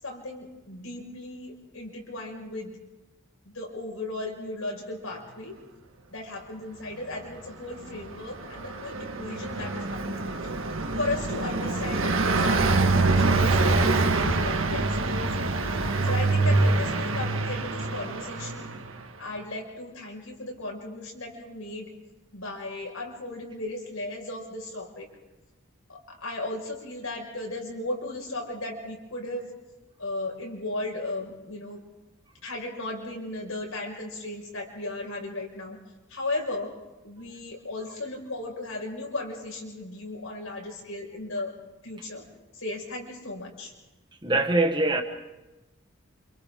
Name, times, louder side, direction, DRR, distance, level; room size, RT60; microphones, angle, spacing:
voice 1, 0.0-2.8 3.4-5.6 6.1-10.5 11.0-15.3 15.7-18.7 19.2-21.9 22.3-25.1 25.9-29.5 30.0-31.8 32.4-35.8 36.1-36.7 37.0-41.5 41.8-42.2 42.5-43.7, left 2 dB, 85° left, 5.8 m, -36 dB
Car passing by, 7.9-18.9, right 3 dB, 80° right, 1.6 m, -25 dB
voice 2, 44.2-45.0, right 2 dB, 20° right, 1.4 m, -23 dB
29.0 x 27.5 x 3.8 m
head